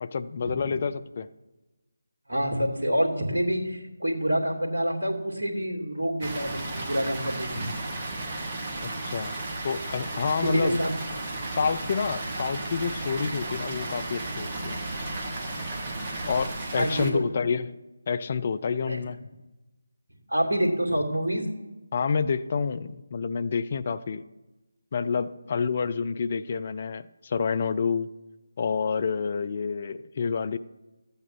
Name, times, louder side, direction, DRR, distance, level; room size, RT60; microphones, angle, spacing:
voice 1, 0.0-1.3 8.8-9.3 9.6-10.8 11.5-14.8 16.3-17.7 18.1-19.2 21.9-24.2 24.9-28.1 28.6-30.6, left 5 dB, 35° left, 13 dB, 0.5 m, -28 dB
voice 2, 2.3-7.7 10.4-10.9 16.7-17.2 18.9-19.0 20.3-21.5, equal, 55° right, 2 dB, 2.6 m, -27 dB
Water, 6.2-17.1, right 2 dB, 25° right, 1.6 m, -34 dB
13.5 x 8.7 x 6.0 m, 1.1 s
figure-of-eight pair, 155°, 0 cm